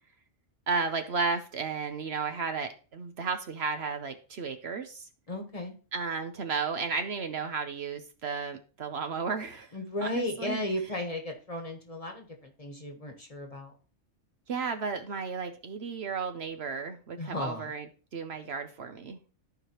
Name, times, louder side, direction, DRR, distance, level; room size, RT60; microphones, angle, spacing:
voice 1, 0.7-5.1 5.9-9.7 10.0-10.6 14.5-19.2, right 5 dB, 60° right, 8 dB, 1.0 m, -33 dB
voice 2, 5.3-5.7 9.7-13.7 17.2-17.7, left 1 dB, 30° left, 3 dB, 1.4 m, -35 dB
14.0 x 4.9 x 3.0 m, 0.35 s
omnidirectional pair, 1.3 m